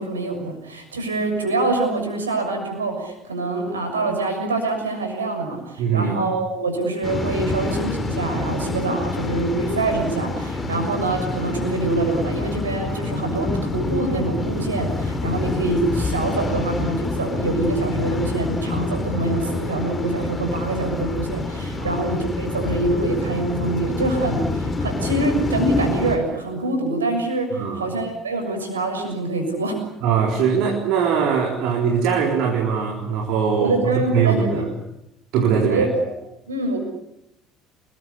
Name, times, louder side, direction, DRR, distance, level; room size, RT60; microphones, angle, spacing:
voice 1, 0.0-29.8 33.6-34.6 35.7-36.1 36.5-36.8, right 2 dB, 80° right, 4 dB, 6.6 m, -25 dB
voice 2, 5.8-6.2 10.6-10.8 21.8-21.9 27.5-27.8 30.0-33.8 34.1-34.7 35.3-35.8, right 6 dB, 55° right, 1 dB, 4.0 m, -21 dB
Waves surf, 7.0-26.2, left 3 dB, 25° left, 5.7 m, -27 dB
28.5 x 21.0 x 8.6 m, 0.86 s
figure-of-eight pair, 60°, 0 cm